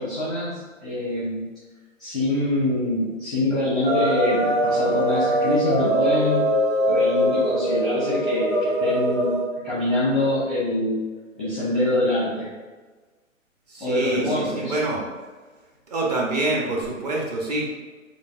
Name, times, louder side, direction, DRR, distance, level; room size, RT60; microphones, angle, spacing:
voice 1, 0.0-1.4 2.0-6.5 6.9-9.3 9.6-11.0 11.4-12.5 13.8-14.7, left 1 dB, ahead, -10 dB, 0.6 m, -25 dB
sound 1, 3.8-9.5, equal, 60° right, 1.2 m, -22 dB
voice 2, 13.7-15.0 15.9-17.7, right 2 dB, 30° right, -2 dB, 0.8 m, -26 dB
6.9 x 2.5 x 2.5 m, 1.3 s
figure-of-eight pair, 130°, 39 cm